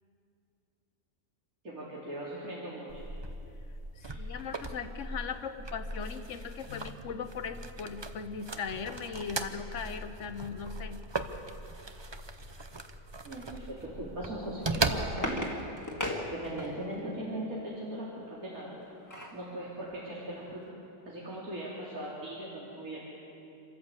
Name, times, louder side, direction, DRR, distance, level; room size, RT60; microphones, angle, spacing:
voice 1, 1.6-3.0 4.0-4.2 13.2-15.4 16.3-18.8 19.3-20.7 21.1-23.0, right 1 dB, 65° right, -7 dB, 3.7 m, -39 dB
sound 1, 2.9-15.5, right 2 dB, 25° right, 0.6 m, -38 dB
voice 2, 4.0-11.0, left 6 dB, 55° left, 10 dB, 1.3 m, -39 dB
sound 2, 14.5-17.0 18.6-19.4 19.9-20.0 20.3-20.5, left 1 dB, 10° left, 2.0 m, -37 dB
27.0 x 13.5 x 8.2 m, 2.7 s
omnidirectional pair, 1.6 m